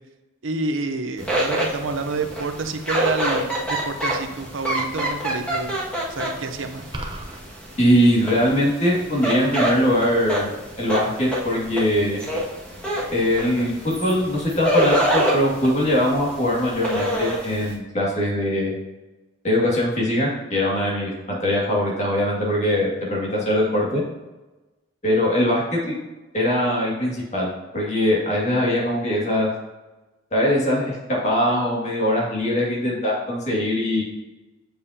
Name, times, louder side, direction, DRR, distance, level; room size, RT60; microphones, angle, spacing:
voice 1, 0.4-3.5 3.8-5.8 6.1-6.9, right 3 dB, 70° right, 7 dB, 0.7 m, -28 dB
sound 1, 1.2-17.7, right 1 dB, 5° left, 1.7 m, -27 dB
sound 2, 6.9-7.4, right 1 dB, 25° right, 0.7 m, -32 dB
voice 2, 7.8-12.2 13.1-18.7 19.4-21.1 21.4-24.0 25.0-26.0 26.3-27.5 27.7-29.5 30.3-31.0 31.2-34.0, left 1 dB, 35° left, -4 dB, 2.1 m, -21 dB
7.6 x 7.0 x 2.8 m, 1.1 s
head